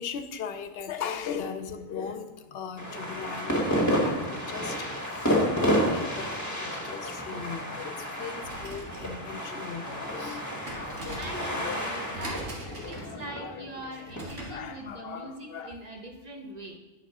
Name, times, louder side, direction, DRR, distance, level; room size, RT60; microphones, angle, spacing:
voice 1, 0.0-4.8 5.1-13.9 14.2-15.8, left 7 dB, 60° left, 9 dB, 0.8 m, -39 dB
sound 1, 2.8-14.2, equal, 15° left, 1.2 m, -30 dB
sound 2, 8.3-14.7, right 1 dB, 90° right, 2.0 m, -42 dB
voice 2, 11.1-12.5 12.8-16.8, right 1 dB, 35° right, 2 dB, 1.0 m, -42 dB
9.0 x 6.0 x 4.8 m, 1.1 s
omnidirectional pair, 1.2 m